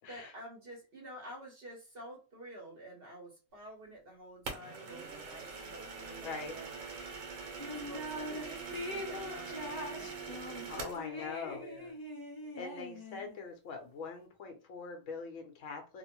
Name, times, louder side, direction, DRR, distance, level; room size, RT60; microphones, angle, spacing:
voice 1, 0.1-6.7 7.7-11.9, right 1 dB, 50° right, -2 dB, 1.2 m, -50 dB
sound 1, 4.5-11.1, right 4 dB, 85° right, 1.2 m, -43 dB
voice 2, 6.2-6.6 10.7-11.6 12.6-16.0, left 5 dB, 75° left, 3 dB, 1.1 m, -42 dB
sound 2, 7.6-8.4 8.7-13.4, left 1 dB, 30° left, 0.4 m, -42 dB
2.9 x 2.1 x 2.9 m, 0.33 s
omnidirectional pair, 1.3 m